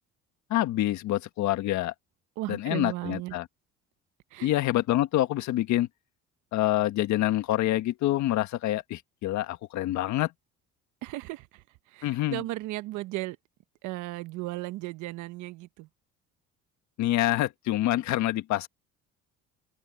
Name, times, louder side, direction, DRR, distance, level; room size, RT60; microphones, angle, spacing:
voice 1, 0.5-1.9 2.5-3.5 4.4-5.9 6.5-10.3 12.0-12.4 17.0-18.7, left 15 dB, 70° left, 1.6 m, -26 dB
voice 2, 2.4-3.4 4.3-4.5 11.0-13.4 13.8-15.9, right 18 dB, 80° right, 1.0 m, -36 dB
open air
cardioid pair, 105°, 30 cm